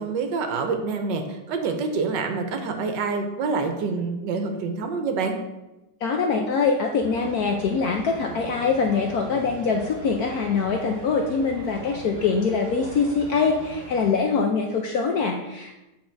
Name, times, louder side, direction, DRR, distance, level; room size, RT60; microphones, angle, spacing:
voice 1, 0.0-5.4, right 4 dB, 65° right, 5 dB, 1.3 m, -27 dB
voice 2, 6.0-15.8, left 5 dB, 70° left, 2 dB, 0.9 m, -23 dB
sound 1, 7.0-14.1, right 2 dB, 50° right, 0.7 m, -40 dB
8.6 x 4.0 x 4.4 m, 1.0 s
omnidirectional pair, 2.2 m